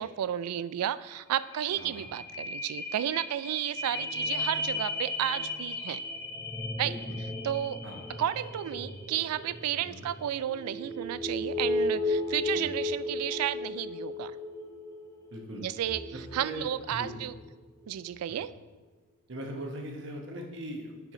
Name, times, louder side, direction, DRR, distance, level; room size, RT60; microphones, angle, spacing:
voice 1, 0.0-6.0 6.8-6.9 7.4-7.8 8.2-14.4 15.6-16.0 16.3-17.3 17.9-18.5, right 11 dB, 90° right, 17 dB, 0.3 m, -32 dB
sound 1, 1.1-1.2 1.5-17.4 17.9-18.0, left 2 dB, 15° left, 0.6 m, -35 dB
voice 2, 1.8-2.1 6.7-7.2 7.8-8.0 9.8-10.1 12.5-12.8 15.3-15.7 16.1-17.2 18.3-18.4 19.3-21.1, right 1 dB, 55° right, 1 dB, 1.0 m, -41 dB
6.8 x 4.9 x 4.9 m, 1.3 s
head